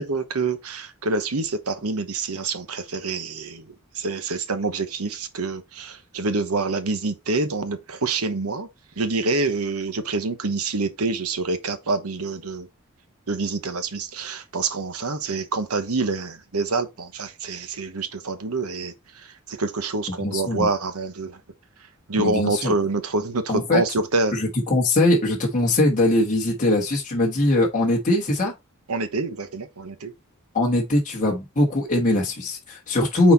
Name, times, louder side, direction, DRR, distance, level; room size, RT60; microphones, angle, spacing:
voice 1, 0.0-8.7 9.0-12.7 13.3-18.9 19.5-21.4 22.1-24.3 28.9-30.1, right 3 dB, 85° right, 1.1 m, -26 dB
voice 2, 20.2-20.7 22.2-22.7 23.5-23.8 24.3-28.5 30.5-33.3, left 1 dB, 35° left, 1.3 m, -21 dB
5.9 x 4.2 x 4.1 m
head